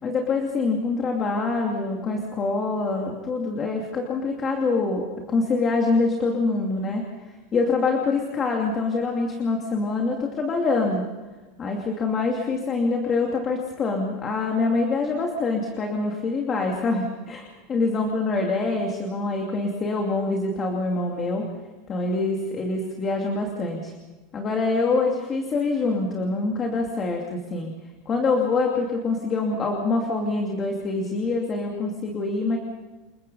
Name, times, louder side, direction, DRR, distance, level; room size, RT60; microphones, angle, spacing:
voice 1, 0.0-11.0 11.6-21.5 21.9-23.9 24.3-27.7 28.1-32.6, left 3 dB, 20° left, 1 dB, 2.6 m, -25 dB
29.0 x 22.0 x 5.6 m, 1.2 s
supercardioid pair, 180°, 0 cm